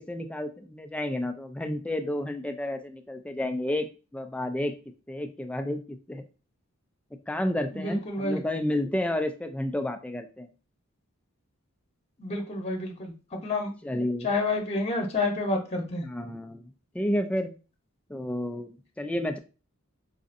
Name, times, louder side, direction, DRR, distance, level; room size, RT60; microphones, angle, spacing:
voice 1, 0.0-4.7 5.1-6.2 7.3-10.5 13.8-14.3 16.0-17.5 18.1-19.4, left 1 dB, 5° left, 6 dB, 0.3 m, -31 dB
voice 2, 7.7-8.4 12.2-13.7 14.2-16.0, left 2 dB, 30° left, 1 dB, 0.8 m, -29 dB
4.8 x 2.5 x 2.5 m, 0.33 s
head